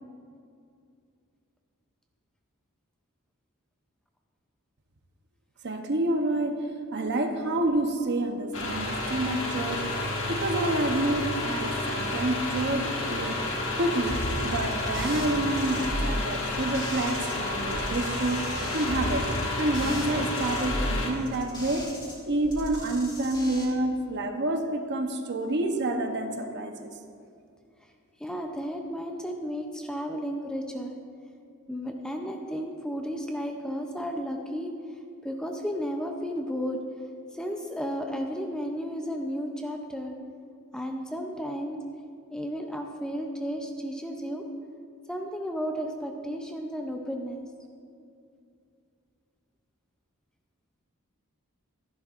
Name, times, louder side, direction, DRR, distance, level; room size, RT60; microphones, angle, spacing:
voice 1, 5.6-13.4 13.8-19.3 19.6-21.9 22.2-26.9, right 1 dB, 50° right, 5 dB, 0.8 m, -28 dB
sound 1, 8.5-21.1, left 2 dB, 60° left, 1.5 m, -31 dB
sound 2, 14.1-17.3 17.6-22.1 22.4-23.6, equal, 20° left, 2.2 m, -35 dB
voice 2, 28.2-31.0 31.7-34.7 35.2-36.8 37.3-40.1 40.7-41.8 42.3-44.4 45.1-47.5, equal, 5° left, 2 dB, 0.5 m, -33 dB
12.5 x 11.0 x 2.5 m, 2.4 s
head